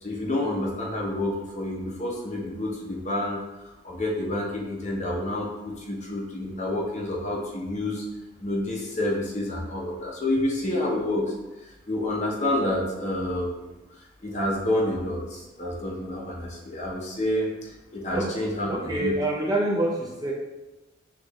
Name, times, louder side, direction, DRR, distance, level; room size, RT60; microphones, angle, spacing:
voice 1, 0.0-8.0 8.4-13.5 14.0-19.2, left 1 dB, 35° left, -2 dB, 0.7 m, -29 dB
voice 2, 18.7-20.3, right 1 dB, 20° right, -3 dB, 0.6 m, -26 dB
6.5 x 2.5 x 3.1 m, 1.1 s
head